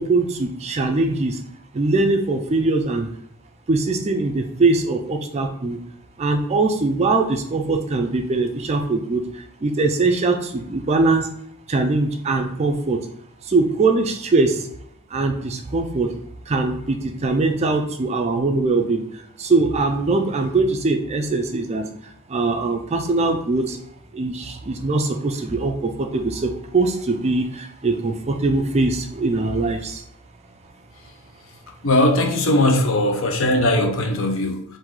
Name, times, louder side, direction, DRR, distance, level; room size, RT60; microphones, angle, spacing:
voice 1, 0.0-1.4 1.7-3.1 3.7-5.8 6.2-9.2 9.6-11.3 11.7-13.0 13.5-14.6 15.1-16.1 16.5-19.0 19.4-21.8 22.3-23.8 24.1-30.0, right 3 dB, 30° right, 5 dB, 0.3 m, -21 dB
voice 2, 31.8-34.6, left 1 dB, 60° left, 3 dB, 0.6 m, -19 dB
4.6 x 2.6 x 3.7 m, 0.72 s
head